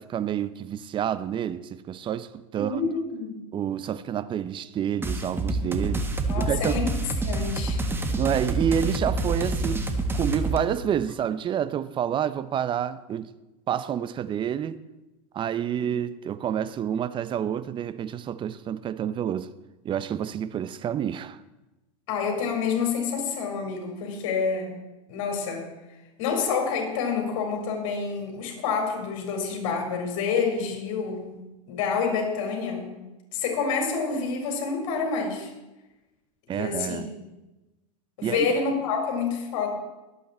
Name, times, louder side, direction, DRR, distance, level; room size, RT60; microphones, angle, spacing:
voice 1, 0.0-2.8 3.5-6.1 6.3-6.7 8.2-9.9 10.1-13.3 13.7-14.8 15.3-19.5 19.8-21.4 36.5-37.1 38.2-38.6, right 9 dB, 30° right, 0.6 m, -28 dB
voice 2, 2.5-3.4 6.3-6.9 7.2-7.8 22.1-24.8 25.1-25.7 26.2-31.3 31.7-32.9 33.3-35.5 36.5-37.0 38.2-39.7, left 5 dB, 65° left, 4.7 m, -28 dB
sound 1, 5.0-10.6, right 2 dB, 15° right, 1.5 m, -27 dB
22.0 x 8.4 x 4.3 m
hypercardioid pair, 115°, 17 cm